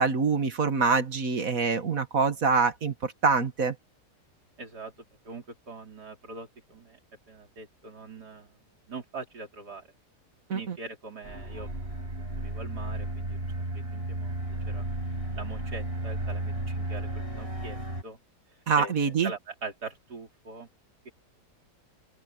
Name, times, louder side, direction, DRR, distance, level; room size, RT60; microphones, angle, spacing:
voice 1, 0.0-3.8 10.5-10.8 18.7-19.3, right 5 dB, 60° right, 2.0 m, -25 dB
voice 2, 4.6-4.9 5.2-7.0 7.3-8.5 8.9-9.8 10.5-11.7 12.4-13.4 13.7-14.3 14.7-14.8 15.4-17.8 18.0-18.2 18.8-18.9 19.2-20.7, right 4 dB, 80° right, 4.6 m, -42 dB
sound 1, 11.2-18.0, right 1 dB, 35° right, 5.5 m, -33 dB
open air
omnidirectional pair, 1.7 m